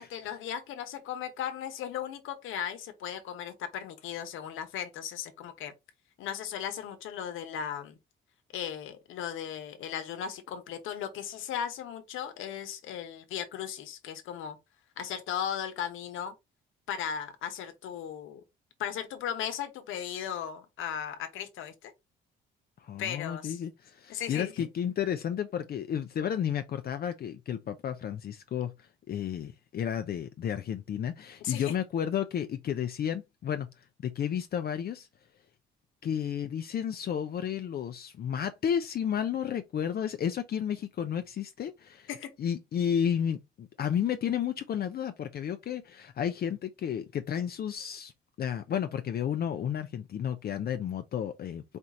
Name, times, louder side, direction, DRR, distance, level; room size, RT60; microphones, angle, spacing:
voice 1, 0.0-5.7 6.2-8.0 8.5-14.6 15.0-16.3 16.9-18.4 18.8-21.9 23.0-23.6 24.1-24.7 31.4-31.7 42.1-42.3, left 9 dB, 85° left, 1.0 m, -36 dB
voice 2, 22.8-35.1 36.0-42.1 42.4-48.1 48.4-51.6, left 9 dB, 50° left, 0.5 m, -32 dB
4.5 x 2.4 x 4.0 m
cardioid pair, 90°, 20 cm